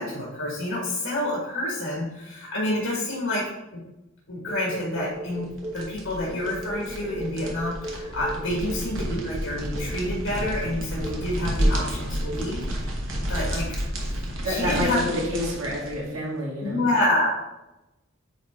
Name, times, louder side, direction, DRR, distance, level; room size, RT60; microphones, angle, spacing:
voice 1, 0.0-3.8 4.3-5.5 5.7-12.9 13.3-15.0 16.6-17.3, left 1 dB, 70° left, -4 dB, 1.8 m, -28 dB
sound 1, 4.5-5.9 6.4-9.3 9.7-10.0 10.4-10.7 11.0-11.3 11.6-11.9 12.3-12.5, right 1 dB, 30° right, 1.0 m, -37 dB
sound 2, 5.3-16.0, equal, 65° right, 1.3 m, -30 dB
voice 2, 14.4-16.8, left 1 dB, 85° right, -4 dB, 2.4 m, -28 dB
8.8 x 3.7 x 3.6 m, 0.96 s
head